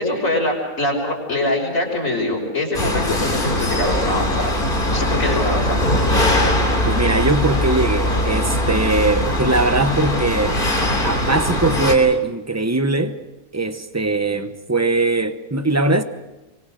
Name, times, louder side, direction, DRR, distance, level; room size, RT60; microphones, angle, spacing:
voice 1, 0.0-4.5 4.9-5.8, left 1 dB, 65° left, 6.0 m, -23 dB
sound 1, 2.7-11.9, left 1 dB, 35° left, 3.4 m, -20 dB
voice 2, 6.8-10.6 11.0-13.2 13.5-16.0, right 2 dB, 15° right, 0.9 m, -20 dB
25.0 x 23.5 x 6.5 m
omnidirectional pair, 1.5 m